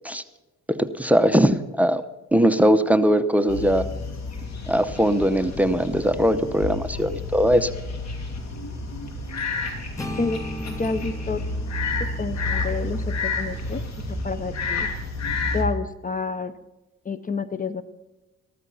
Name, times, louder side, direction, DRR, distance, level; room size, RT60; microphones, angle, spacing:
voice 1, 0.7-2.0 2.3-3.9 4.7-7.7, equal, 5° right, 13 dB, 0.7 m, -20 dB
sound 1, 3.5-15.6, left 3 dB, 60° left, 2.6 m, -30 dB
sound 2, 10.0-14.0, equal, 10° left, 1.3 m, -38 dB
voice 2, 10.2-11.4 12.0-13.8 14.1-14.9 15.5-16.5 17.1-17.8, left 4 dB, 25° left, 14 dB, 0.6 m, -29 dB
14.0 x 13.5 x 5.6 m, 1.1 s
cardioid pair, 90°, 30 cm